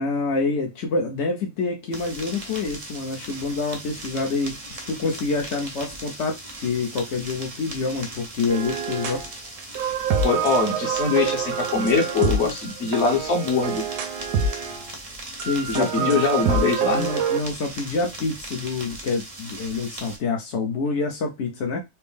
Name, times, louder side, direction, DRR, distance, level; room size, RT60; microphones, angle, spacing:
voice 1, 0.0-9.2 15.4-16.2 16.6-21.8, left 3 dB, 65° left, 0.7 m, -27 dB
sound 1, 1.9-20.2, right 1 dB, 35° right, 0.5 m, -39 dB
sound 2, 8.5-9.3 9.6-14.9 15.4-17.4, right 6 dB, 70° right, 1.2 m, -26 dB
voice 2, 10.2-13.8 15.7-17.1, left 5 dB, 45° left, 1.0 m, -23 dB
4.4 x 2.0 x 3.4 m
omnidirectional pair, 2.0 m